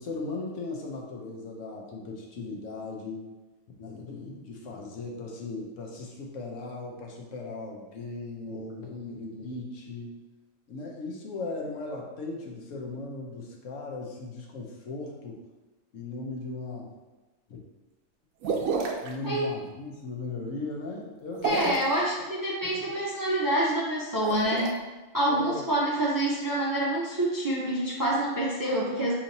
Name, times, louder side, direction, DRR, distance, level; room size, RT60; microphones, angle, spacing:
voice 1, 0.0-3.2 3.8-10.2 10.7-15.4 15.9-16.9 17.5-17.6 19.0-21.9 22.6-22.9 25.3-25.6, left 3 dB, 70° left, -1 dB, 1.1 m, -37 dB
sound 1, 18.4-19.1 21.3-21.9 24.1-24.7, right 5 dB, 80° right, 1.0 m, -29 dB
voice 2, 21.4-24.8 25.1-29.1, right 1 dB, 25° right, -5 dB, 0.5 m, -27 dB
6.1 x 2.9 x 2.7 m, 1.2 s
omnidirectional pair, 1.4 m